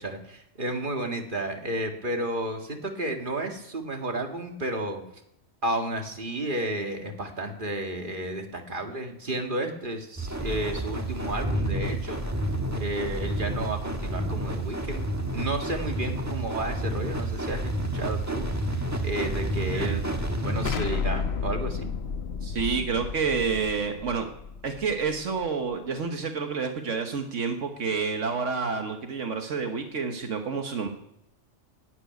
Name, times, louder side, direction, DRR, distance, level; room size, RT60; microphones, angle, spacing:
voice 1, 0.0-5.0 5.6-12.2 12.8-21.9, right 1 dB, 45° right, 3 dB, 2.0 m, -32 dB
sound 1, 10.2-20.7, right 1 dB, 15° right, 1.4 m, -30 dB
voice 2, 19.6-20.0 22.4-24.3 24.6-30.9, right 5 dB, 80° right, 5 dB, 1.6 m, -29 dB
Explosion, 20.7-25.5, left 5 dB, 60° left, 1.2 m, -32 dB
11.5 x 9.8 x 9.3 m, 0.81 s
omnidirectional pair, 1.3 m